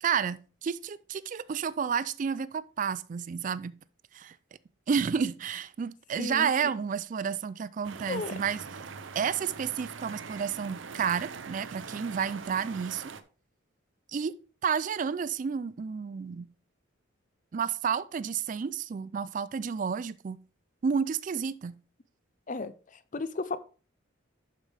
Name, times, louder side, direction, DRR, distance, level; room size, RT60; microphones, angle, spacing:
voice 1, 0.0-3.8 4.1-4.4 4.9-8.6 9.2-13.0 14.1-14.4 14.6-16.5 17.5-20.4 20.8-21.8, right 6 dB, 40° right, 0.3 m, -31 dB
voice 2, 6.2-6.5 8.1-8.4 22.5-22.7 23.1-23.6, left 3 dB, 40° left, 0.5 m, -33 dB
sound 1, 7.8-13.2, right 5 dB, 70° right, 0.6 m, -43 dB
11.5 x 5.1 x 3.4 m
head